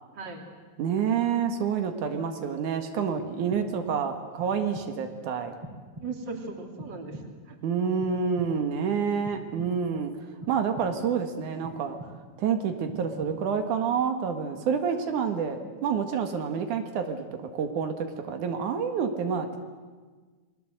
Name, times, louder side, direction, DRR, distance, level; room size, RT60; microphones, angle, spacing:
voice 1, 0.1-0.6 2.1-2.6 6.0-7.6 15.4-15.8, right 4 dB, 35° right, 3 dB, 3.4 m, -39 dB
voice 2, 0.8-5.5 7.6-10.1 10.5-12.0 12.4-17.3 17.5-19.6, right 6 dB, 85° right, 6 dB, 3.1 m, -28 dB
sound 1, 3.2-4.0 4.4-5.1 5.6-6.4 6.8-7.6 8.0-8.8 9.2-10.0 10.4-11.2 11.6-12.5 12.9-13.7, right 1 dB, 55° right, 4.2 m, -45 dB
28.5 x 21.5 x 7.9 m, 1.4 s
omnidirectional pair, 3.4 m